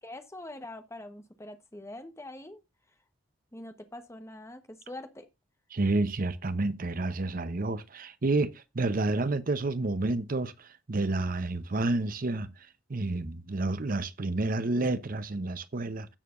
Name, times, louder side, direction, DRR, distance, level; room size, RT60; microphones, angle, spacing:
voice 1, 0.0-2.6 3.5-5.3, left 1 dB, 15° left, 1.0 m, -44 dB
voice 2, 5.7-12.5 12.9-16.2, right 2 dB, 45° right, 0.7 m, -30 dB
16.0 x 6.6 x 2.5 m
head